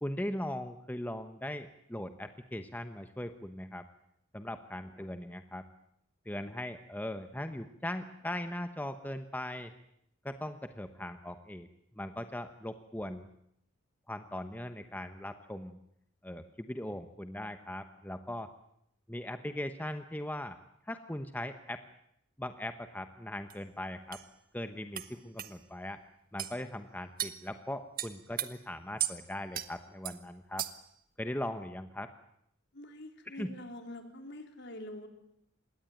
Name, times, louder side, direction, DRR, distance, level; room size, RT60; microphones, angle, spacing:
voice 1, 0.0-3.8 4.3-5.7 6.3-9.7 10.2-11.7 12.0-13.3 14.1-15.8 16.2-18.5 19.1-20.6 20.9-21.8 22.4-24.2 24.5-26.0 26.3-30.7 31.2-32.1 33.3-33.5, left 1 dB, 10° left, 8 dB, 1.0 m, -39 dB
sound 1, 23.5-23.6 24.1-24.3 25.0-25.1 25.4-25.5 26.4-26.6 27.2-27.4 28.0-28.5 29.0-29.2 29.5-29.7 30.1-30.2 30.6-30.9, right 11 dB, 45° right, 1.5 m, -35 dB
voice 2, 32.7-35.1, left 1 dB, 55° left, 5 dB, 3.9 m, -46 dB
26.5 x 21.0 x 9.2 m, 0.74 s
head